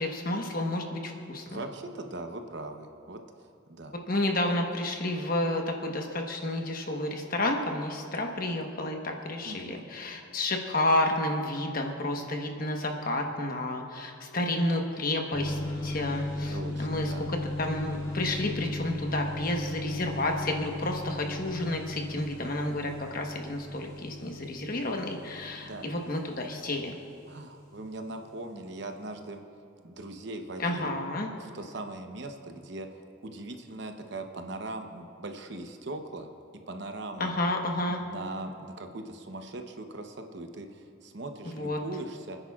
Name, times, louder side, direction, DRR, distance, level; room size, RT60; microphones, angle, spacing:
voice 1, 0.0-1.6 4.1-27.0 30.6-31.3 37.2-38.0 41.4-41.8, left 1 dB, 45° left, 2 dB, 1.2 m, -31 dB
voice 2, 1.5-3.2 3.7-4.0 9.4-9.9 16.5-17.3 25.6-26.0 27.3-29.4 29.8-30.9 31.4-36.3 36.7-37.3 38.0-42.4, right 2 dB, 55° right, 5 dB, 0.9 m, -40 dB
sound 1, 15.3-27.8, left 1 dB, 25° left, 3.4 m, -36 dB
29.5 x 10.0 x 2.4 m, 2.7 s
head